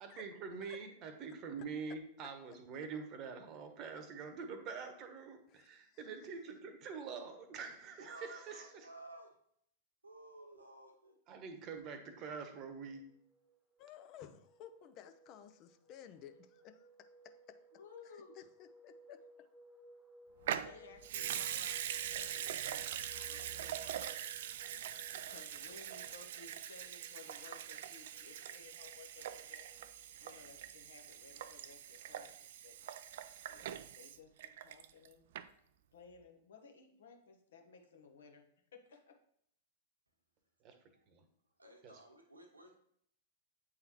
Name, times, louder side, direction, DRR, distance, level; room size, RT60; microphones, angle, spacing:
voice 1, 0.0-8.8 11.3-13.1 40.6-40.7 41.1-41.2 41.8-41.9, right 5 dB, 35° right, 7 dB, 1.0 m, -45 dB
voice 2, 5.5-6.1 13.8-17.6 18.0-19.2, left 10 dB, 40° left, 9 dB, 0.5 m, -56 dB
voice 3, 8.0-9.4 10.0-11.2 41.6-42.7, right 1 dB, 90° right, 2 dB, 1.2 m, -55 dB
sound 1, 12.9-30.4, equal, 5° left, 1.1 m, -63 dB
voice 4, 17.7-18.4 20.5-24.2 25.3-29.7 30.2-32.7 33.5-35.3 35.9-38.4 38.7-39.1, left 5 dB, 65° left, 3 dB, 1.1 m, -58 dB
Water tap faucet / Sink (filling or washing) / Liquid, 20.4-35.1 35.3-35.4, right 10 dB, 60° right, 0.3 m, -43 dB
8.3 x 3.7 x 3.0 m, 0.69 s
figure-of-eight pair, 100°, 0 cm